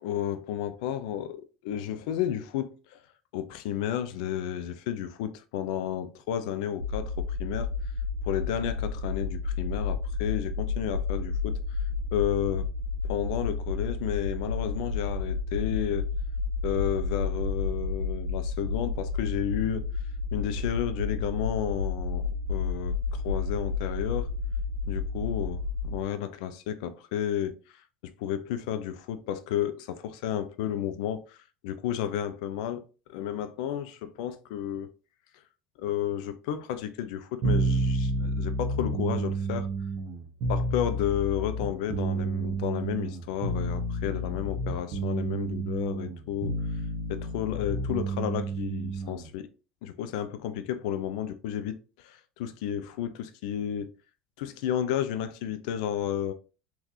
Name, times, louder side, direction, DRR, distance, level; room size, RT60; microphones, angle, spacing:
voice 1, 0.0-1.4 1.6-3.0 3.3-7.7 8.2-11.6 12.1-12.7 13.0-16.1 16.6-19.8 20.3-24.3 24.9-25.6 25.8-27.6 28.0-31.4 31.6-32.8 33.1-34.9 35.8-39.7 40.5-46.5 47.1-49.5 49.8-53.9 54.4-56.3, left 10 dB, 65° left, 0.5 m, -32 dB
sound 1, 6.8-26.0, left 4 dB, 80° right, 0.7 m, -31 dB
sound 2, 37.4-49.3, right 2 dB, 50° right, 1.1 m, -30 dB
3.8 x 2.8 x 2.7 m
figure-of-eight pair, 70°, 4 cm